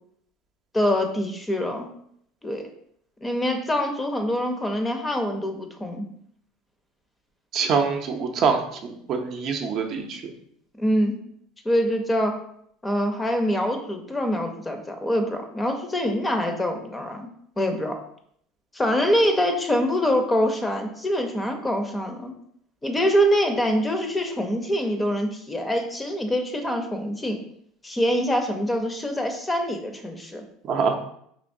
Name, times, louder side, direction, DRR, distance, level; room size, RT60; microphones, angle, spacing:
voice 1, 0.7-1.9 2.4-2.6 3.2-6.0 10.8-11.1 11.6-12.4 12.8-17.3 17.6-18.0 18.7-22.3 22.8-27.4 27.8-30.4, equal, 15° left, 5 dB, 0.5 m, -24 dB
voice 2, 7.5-10.2 30.6-31.0, right 5 dB, 50° right, 4 dB, 0.5 m, -24 dB
4.3 x 2.9 x 2.6 m, 0.69 s
supercardioid pair, 100°, 0 cm